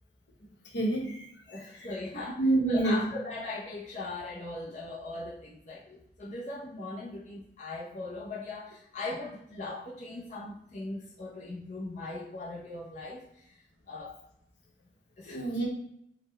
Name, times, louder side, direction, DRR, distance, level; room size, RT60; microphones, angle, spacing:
voice 1, 0.7-1.6 2.4-2.9 15.3-15.7, right 2 dB, 70° left, -1 dB, 1.0 m, -27 dB
voice 2, 1.5-13.6 13.9-14.2 15.2-15.5, left 2 dB, 40° left, -5 dB, 0.6 m, -39 dB
4.1 x 2.2 x 4.0 m, 0.75 s
head